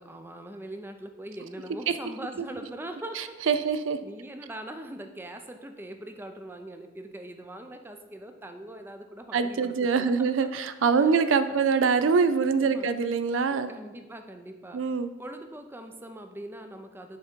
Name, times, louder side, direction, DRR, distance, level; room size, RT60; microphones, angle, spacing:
voice 1, 0.0-3.4 4.0-10.5 11.0-11.2 11.5-11.6 12.6-12.9 13.5-14.8 15.2-17.2, right 1 dB, 10° right, 6 dB, 0.5 m, -42 dB
voice 2, 3.5-4.0 9.3-13.7 14.7-15.1, right 5 dB, 80° right, 11 dB, 0.4 m, -24 dB
10.0 x 3.6 x 4.4 m, 1.2 s
head